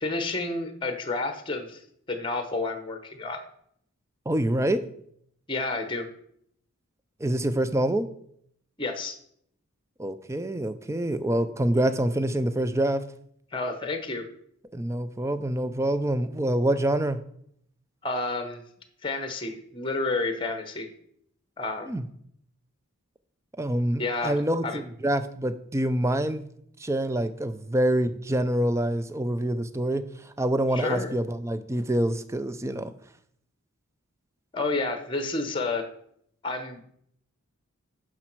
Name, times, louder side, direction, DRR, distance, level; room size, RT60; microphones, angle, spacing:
voice 1, 0.0-1.8 2.1-3.4 5.5-6.1 8.8-9.2 13.5-14.2 18.0-18.6 19.0-20.9 21.6-22.0 24.0-24.4 24.6-24.8 30.7-31.1 34.5-35.9 36.4-36.8, left 3 dB, 20° left, 8 dB, 0.9 m, -30 dB
voice 2, 4.3-4.8 7.2-8.1 10.0-13.0 14.7-17.2 21.9-22.0 23.6-26.4 26.8-30.0 30.4-32.9, right 1 dB, 15° right, 12 dB, 0.4 m, -26 dB
10.0 x 6.2 x 4.5 m, 0.68 s
head